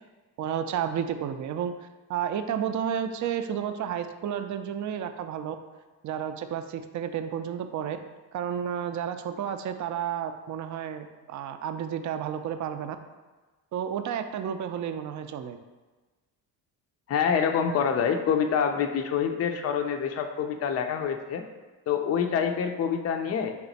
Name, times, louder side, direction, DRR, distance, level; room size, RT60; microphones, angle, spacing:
voice 1, 0.4-1.7 2.1-5.6 6.0-8.0 8.3-13.0 13.7-15.6, right 8 dB, 45° right, 8 dB, 0.4 m, -31 dB
voice 2, 17.1-21.4 21.9-23.6, left 7 dB, 35° left, 5 dB, 0.4 m, -26 dB
3.4 x 3.0 x 4.0 m, 1.3 s
supercardioid pair, 65°, 43 cm